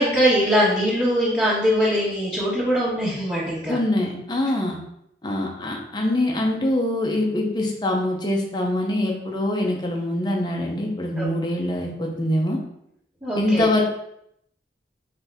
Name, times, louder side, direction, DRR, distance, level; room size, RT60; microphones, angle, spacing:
voice 1, 0.0-3.8 11.2-11.3 13.2-13.6, equal, 20° right, -14 dB, 1.4 m, -21 dB
voice 2, 3.7-4.8 5.2-12.6 13.3-13.8, left 1 dB, 25° left, 0 dB, 0.6 m, -24 dB
3.8 x 2.7 x 3.4 m, 0.76 s
head